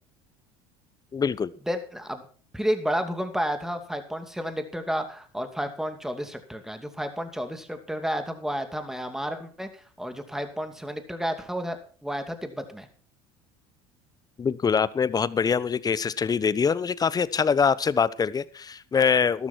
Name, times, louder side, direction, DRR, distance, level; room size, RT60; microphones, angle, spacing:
voice 1, 1.1-1.5 14.4-19.5, left 6 dB, 25° left, 0.8 m, -24 dB
voice 2, 1.7-2.2 2.5-12.9, equal, 5° right, 2.6 m, -31 dB
13.0 x 12.5 x 4.5 m
hypercardioid pair, 85°, 15 cm